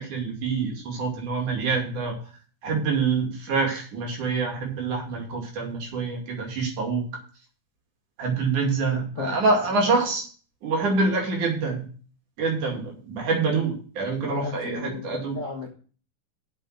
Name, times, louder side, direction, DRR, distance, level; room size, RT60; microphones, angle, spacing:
voice 1, 0.0-2.2 2.6-7.1 8.2-10.2 10.6-11.8 12.4-15.4, right 4 dB, 60° right, 1 dB, 3.8 m, -26 dB
voice 2, 8.9-9.4 14.2-15.7, left 4 dB, 50° left, 0 dB, 0.8 m, -35 dB
7.6 x 6.1 x 7.7 m, 0.41 s
omnidirectional pair, 4.0 m